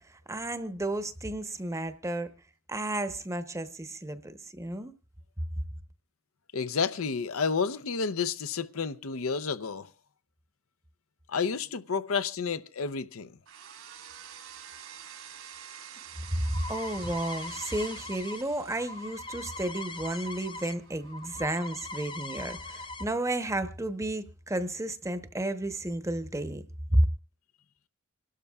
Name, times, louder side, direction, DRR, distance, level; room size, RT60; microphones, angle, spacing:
voice 1, 0.3-2.3 2.7-4.9 16.3-26.6 26.9-27.1, right 1 dB, 15° right, 0.9 m, -32 dB
voice 2, 6.5-9.9 11.3-13.3, left 5 dB, 80° left, 0.7 m, -30 dB
sound 1, 13.5-21.6, right 8 dB, 85° right, 3.2 m, -48 dB
sound 2, 16.0-20.7 21.0-23.0, left 3 dB, 25° left, 0.7 m, -41 dB
26.5 x 12.5 x 2.3 m
head